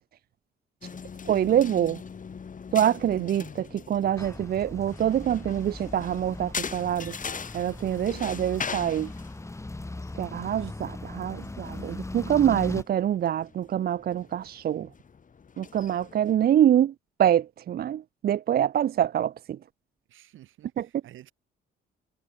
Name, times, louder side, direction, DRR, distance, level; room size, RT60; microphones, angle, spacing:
sound 1, 0.8-16.4, left 6 dB, 40° left, 4.6 m, -42 dB
voice 1, 1.3-2.0 2.7-7.1 7.5-9.1 10.2-14.9 15.6-16.9 17.2-19.3, right 10 dB, 50° right, 0.5 m, -25 dB
sound 2, 4.2-12.8, left 2 dB, 15° left, 2.7 m, -39 dB
voice 2, 7.6-9.1 10.5-12.3 20.1-21.3, right 13 dB, 80° right, 6.7 m, -55 dB
cardioid pair, 90°, 20 cm